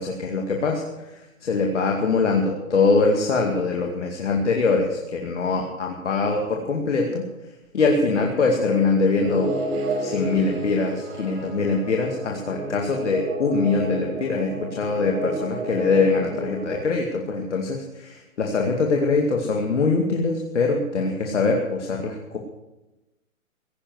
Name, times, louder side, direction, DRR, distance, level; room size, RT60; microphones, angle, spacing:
voice 1, 0.0-7.3 7.7-9.5 10.0-22.4, left 4 dB, 60° left, 1 dB, 2.4 m, -23 dB
sound 1, 9.2-16.8, right 2 dB, 45° right, 5.2 m, -31 dB
17.0 x 10.0 x 8.0 m, 1.0 s
hypercardioid pair, 170°, 41 cm